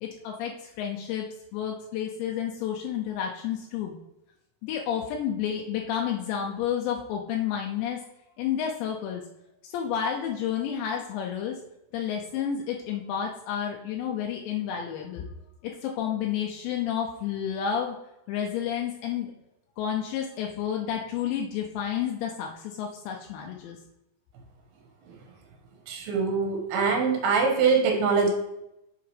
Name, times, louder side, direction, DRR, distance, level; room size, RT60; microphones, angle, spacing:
voice 1, 0.0-1.3 1.5-3.9 4.6-8.0 8.4-9.2 9.6-11.6 11.9-15.2 15.6-18.0 18.3-19.3 19.8-23.8, left 9 dB, 85° left, 1 dB, 2.8 m, -30 dB
voice 2, 25.9-28.3, right 5 dB, 70° right, 1 dB, 2.6 m, -23 dB
7.9 x 4.7 x 3.3 m, 0.86 s
omnidirectional pair, 5.2 m